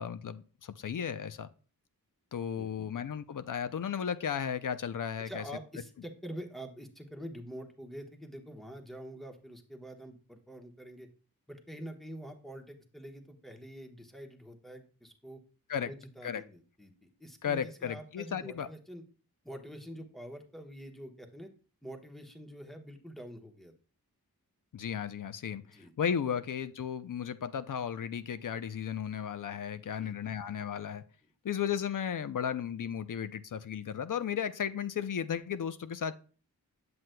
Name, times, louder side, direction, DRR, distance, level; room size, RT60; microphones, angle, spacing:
voice 1, 0.0-1.5 2.3-5.4 15.7-15.9 16.2-16.4 17.4-18.7 24.7-25.6 26.0-31.0 31.4-36.1, left 8 dB, 60° left, 0.6 m, -34 dB
voice 2, 2.5-2.9 5.2-11.1 11.5-15.4 15.8-19.0 19.4-21.5 21.8-23.7 25.6-25.9 29.8-30.3, equal, ahead, 1.1 m, -46 dB
7.7 x 7.6 x 2.2 m
wide cardioid pair, 60°, 36 cm